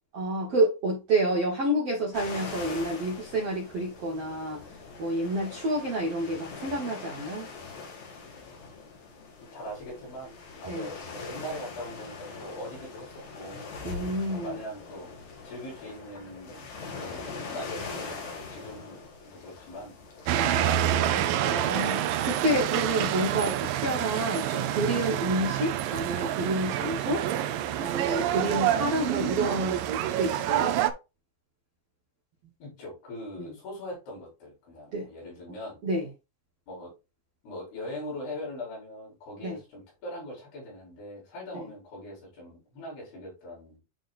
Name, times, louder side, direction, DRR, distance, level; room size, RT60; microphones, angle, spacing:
voice 1, 0.1-4.6 5.0-7.5 10.6-10.9 13.8-14.6 21.4-27.2 27.8-29.8 30.1-30.7 33.4-33.5 34.9-35.1 35.8-36.1 39.4-39.6 41.5-41.6, right 1 dB, 65° right, 1.6 m, -29 dB
sound 1, 2.1-20.4, left 4 dB, 55° left, 2.7 m, -42 dB
voice 2, 9.5-13.7 14.3-15.1 15.4-16.7 16.9-19.9 20.4-20.9 32.6-35.8 36.7-36.9 37.4-43.8, left 1 dB, 75° left, 6.5 m, -41 dB
sound 2, 20.3-30.9, right 11 dB, 80° right, 2.0 m, -27 dB
11.0 x 3.9 x 2.5 m
omnidirectional pair, 4.6 m